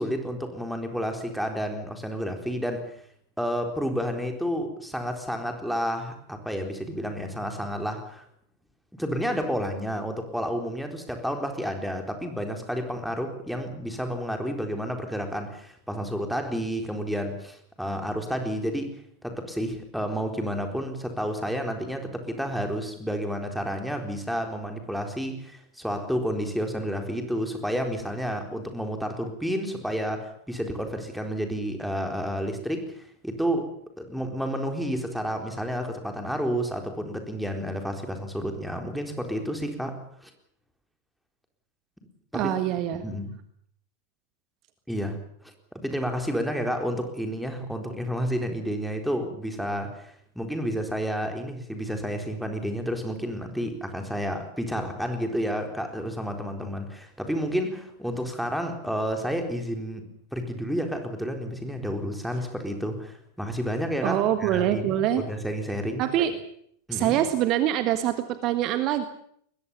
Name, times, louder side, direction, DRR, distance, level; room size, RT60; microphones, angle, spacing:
voice 1, 0.0-2.9 3.4-8.2 8.9-40.3 42.3-42.5 43.0-43.3 44.9-45.2 45.4-66.0 66.9-67.2, equal, ahead, 4 dB, 4.0 m, -30 dB
voice 2, 42.3-43.0 64.0-65.2 66.0-66.3 66.9-69.0, right 11 dB, 40° right, 10 dB, 1.7 m, -24 dB
22.0 x 21.0 x 7.2 m, 0.66 s
figure-of-eight pair, 90°, 0 cm